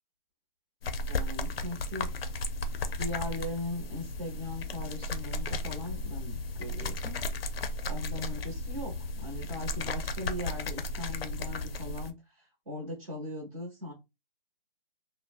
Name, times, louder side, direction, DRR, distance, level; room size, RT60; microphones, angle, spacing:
sound 1, 0.8-12.1, left 2 dB, 85° left, 0.5 m, -35 dB
voice 1, 1.1-2.4 3.0-7.2 7.9-13.9, left 2 dB, 40° right, -3 dB, 0.8 m, -39 dB
2.6 x 2.0 x 2.4 m, 0.24 s
hypercardioid pair, 170°, 29 cm